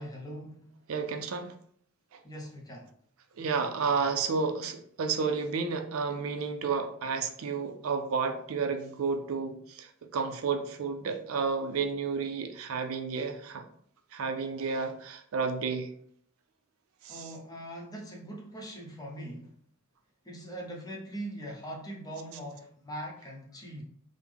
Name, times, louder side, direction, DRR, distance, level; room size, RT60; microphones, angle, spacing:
voice 1, 0.0-0.7 2.2-2.9 17.1-19.5 20.2-23.8, right 1 dB, 20° left, 0.7 m, -41 dB
voice 2, 0.9-1.5 2.1-2.2 3.4-13.6 14.1-15.9 17.0-17.2, right 5 dB, 85° right, 0.4 m, -31 dB
3.4 x 2.0 x 3.4 m
head